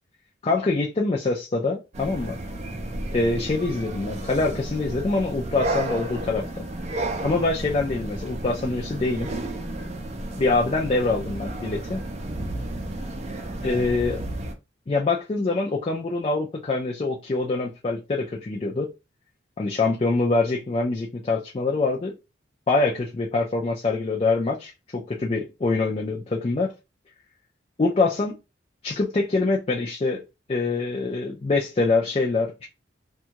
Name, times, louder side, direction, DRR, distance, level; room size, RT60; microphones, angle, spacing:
voice 1, 0.4-2.4 3.1-6.6 7.2-9.3 10.4-12.0 13.6-14.2 14.9-18.9 19.6-22.2 22.7-26.7 27.8-28.3 28.8-30.2 30.5-32.7, left 3 dB, 30° left, 0.4 m, -24 dB
sound 1, 1.9-14.5, right 1 dB, 35° right, 0.4 m, -32 dB
2.6 x 2.3 x 2.8 m
head